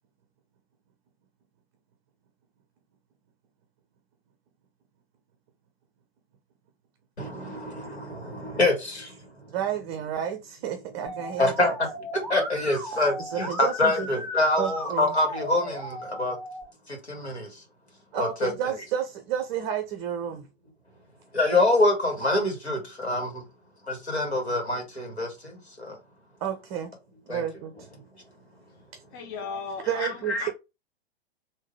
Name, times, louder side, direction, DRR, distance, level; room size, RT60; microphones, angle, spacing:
voice 1, 7.2-9.5 11.4-11.7 12.1-16.4 16.9-17.6 18.1-18.8 21.3-23.4 23.8-26.0 27.3-27.4 28.1-28.2 30.0-30.5, left 2 dB, 80° left, 1.6 m, -26 dB
voice 2, 9.5-11.7 13.3-14.1 14.6-15.2 18.1-20.5 26.4-26.9 27.3-27.9 28.9-29.0 29.9-30.5, right 9 dB, 30° right, 0.5 m, -31 dB
Musical instrument, 11.1-16.6, equal, ahead, 1.8 m, -36 dB
voice 3, 29.1-30.5, left 5 dB, 20° left, 0.3 m, -37 dB
3.7 x 2.6 x 3.1 m
figure-of-eight pair, 105°, 32 cm